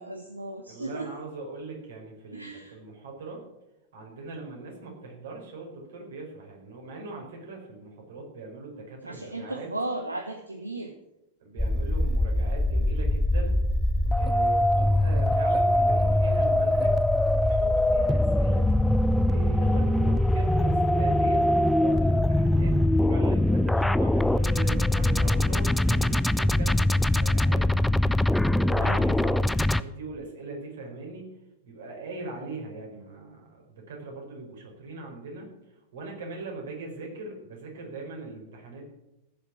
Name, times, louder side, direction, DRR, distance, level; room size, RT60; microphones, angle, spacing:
voice 1, 0.0-1.1 2.3-2.8 9.0-10.9 28.8-29.3, right 2 dB, 85° right, 7 dB, 1.0 m, -35 dB
voice 2, 0.7-3.4 3.9-9.7 11.4-13.6 14.1-18.7 19.2-27.9 28.5-31.3 31.6-38.8, right 3 dB, 60° right, 1 dB, 4.9 m, -40 dB
sound 1, 11.6-29.8, left 1 dB, 5° left, 0.5 m, -23 dB
15.5 x 7.1 x 8.6 m, 0.93 s
figure-of-eight pair, 90°, 0 cm